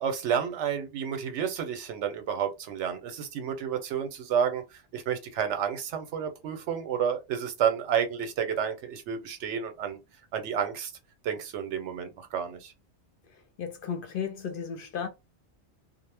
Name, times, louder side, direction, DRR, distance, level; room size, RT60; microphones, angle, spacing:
voice 1, 0.0-10.0 10.3-10.9 11.2-12.7, right 8 dB, 90° right, 0.9 m, -30 dB
voice 2, 13.3-15.1, left 7 dB, 60° left, 0.6 m, -35 dB
2.1 x 2.0 x 3.2 m
omnidirectional pair, 1.2 m